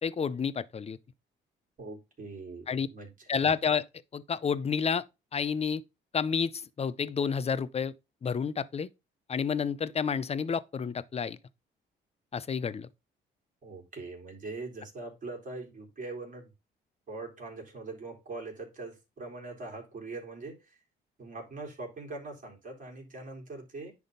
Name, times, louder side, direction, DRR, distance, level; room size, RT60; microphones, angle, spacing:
voice 1, 0.0-1.0 2.7-2.9 3.3-3.8 4.1-5.0 5.3-5.8 6.1-7.9 8.2-8.9 9.3-11.4 12.3-12.9, left 6 dB, 30° left, 0.6 m, -30 dB
voice 2, 1.8-3.3 13.6-16.5 17.1-20.8 21.2-23.9, right 3 dB, 40° right, 3.8 m, -42 dB
10.0 x 3.6 x 3.9 m
cardioid pair, 90°, 20 cm